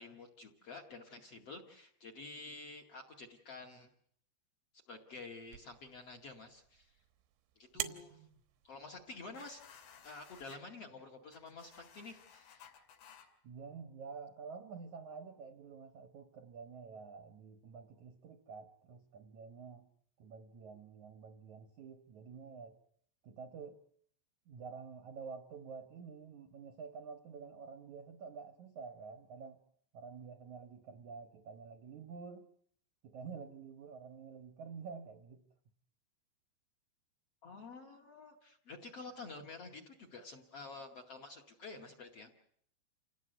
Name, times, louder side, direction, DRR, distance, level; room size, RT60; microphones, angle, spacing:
voice 1, 0.0-3.9 4.9-6.9 7.6-8.2 8.6-9.6 10.0-12.6 37.4-42.3, left 3 dB, 40° left, 9 dB, 2.4 m, -50 dB
sound 1, 5.5-10.5, right 12 dB, 85° right, 3.5 m, -48 dB
voice 2, 7.7-8.4 13.4-19.9 20.2-22.8 23.2-23.8 24.5-29.6 29.9-32.5 33.0-35.5, right 5 dB, 65° right, 8 dB, 2.0 m, -49 dB
sound 2, 9.3-10.6 11.3-13.3, left 8 dB, 70° left, 4.7 m, -57 dB
28.5 x 18.0 x 8.1 m, 0.65 s
omnidirectional pair, 5.2 m